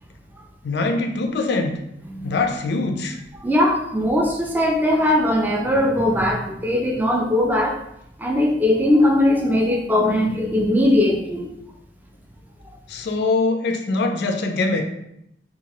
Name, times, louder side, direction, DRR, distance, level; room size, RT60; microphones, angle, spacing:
voice 1, 0.6-1.8 2.2-3.2 12.9-14.8, left 3 dB, 65° left, 5 dB, 0.4 m, -23 dB
voice 2, 3.3-7.8 8.2-11.5, left 1 dB, 10° right, 0 dB, 0.4 m, -20 dB
2.7 x 2.4 x 2.8 m, 0.77 s
head